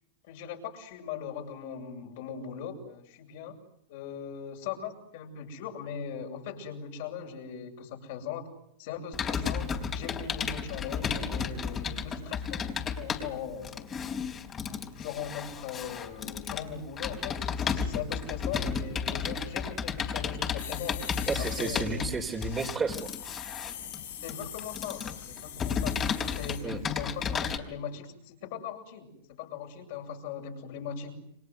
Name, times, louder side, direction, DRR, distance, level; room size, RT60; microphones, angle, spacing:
voice 1, 0.2-3.6 3.9-8.5 8.8-13.9 14.7-21.0 21.4-22.1 24.2-26.0 26.3-31.1, left 7 dB, 65° left, 3 dB, 7.8 m, -39 dB
Computer keyboard, 9.1-27.6, left 6 dB, 30° left, 3.9 m, -33 dB
sound 1, 20.6-27.0 27.3-27.5, left 10 dB, 85° left, 4.1 m, -43 dB
voice 2, 21.3-23.1 26.6-26.8, right 4 dB, 20° right, -2 dB, 3.5 m, -32 dB
29.5 x 25.5 x 8.0 m, 0.72 s
hypercardioid pair, 115°, 0 cm